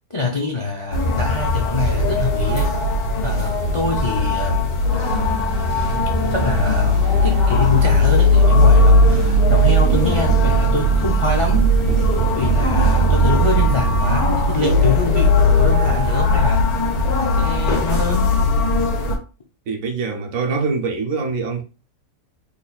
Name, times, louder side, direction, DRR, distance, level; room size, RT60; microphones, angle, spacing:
voice 1, 0.1-2.7 3.2-4.7 6.3-11.7 12.3-16.7 17.3-18.4, left 3 dB, 45° left, 0.4 m, -25 dB
sound 1, 0.9-19.2, left 1 dB, 80° left, 1.5 m, -17 dB
sound 2, 4.9-14.2, right 5 dB, 90° right, 1.1 m, -29 dB
voice 2, 19.7-21.6, right 4 dB, 70° right, 1.1 m, -24 dB
4.0 x 3.3 x 2.3 m
omnidirectional pair, 1.5 m